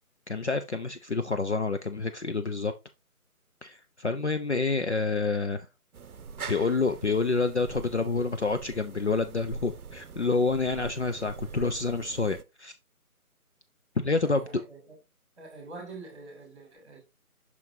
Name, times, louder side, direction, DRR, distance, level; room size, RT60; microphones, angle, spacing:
voice 1, 0.3-2.7 3.6-5.7 6.5-12.7 14.0-14.4, left 4 dB, 50° left, 0.6 m, -28 dB
sound 1, 5.9-12.4, right 5 dB, 70° right, 0.7 m, -43 dB
voice 2, 14.2-15.0 15.4-17.0, right 3 dB, 20° right, 2.9 m, -45 dB
6.1 x 5.8 x 2.7 m
figure-of-eight pair, 160°, 45 cm